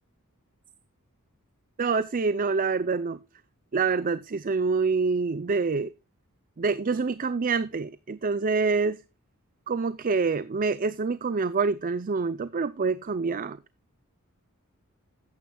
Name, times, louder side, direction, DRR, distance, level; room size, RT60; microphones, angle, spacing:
voice 1, 1.8-3.2 3.7-5.9 6.6-9.0 9.7-13.6, right 4 dB, 40° right, 0.5 m, -26 dB
13.5 x 9.6 x 2.3 m
head